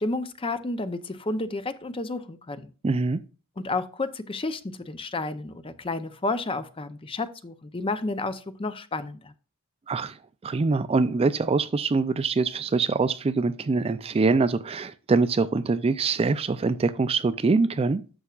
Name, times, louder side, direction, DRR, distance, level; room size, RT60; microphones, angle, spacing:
voice 1, 0.0-2.7 3.6-9.3, left 2 dB, 25° left, 0.6 m, -31 dB
voice 2, 2.8-3.2 9.9-18.0, right 4 dB, 25° right, 0.3 m, -24 dB
11.0 x 7.0 x 2.4 m
head